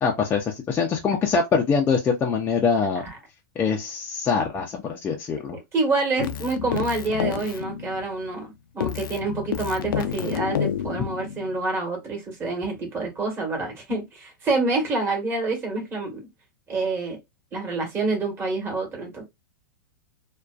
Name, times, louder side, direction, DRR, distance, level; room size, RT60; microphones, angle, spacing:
voice 1, 0.0-3.0 3.6-5.6, left 5 dB, 20° left, 0.4 m, -23 dB
voice 2, 5.7-16.2 16.7-17.2 17.5-19.2, right 3 dB, 25° right, 1.2 m, -27 dB
Keyboard (musical), 6.2-8.5 8.8-11.6, left 9 dB, 85° left, 0.4 m, -29 dB
2.5 x 2.2 x 2.3 m
hypercardioid pair, 135°, 11 cm